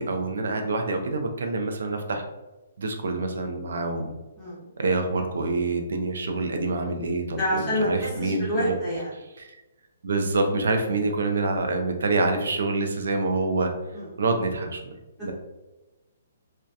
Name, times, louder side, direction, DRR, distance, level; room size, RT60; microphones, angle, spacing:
voice 1, 0.0-2.3 2.8-4.1 4.8-8.8 9.4-9.5 10.0-13.7 14.2-14.9 15.2-15.3, right 3 dB, 65° right, 5 dB, 0.4 m, -26 dB
voice 2, 4.4-4.7 7.3-9.1 10.8-11.0 13.9-14.2, equal, ahead, -13 dB, 0.5 m, -28 dB
2.3 x 2.1 x 2.6 m, 1.1 s
hypercardioid pair, 180°, 0 cm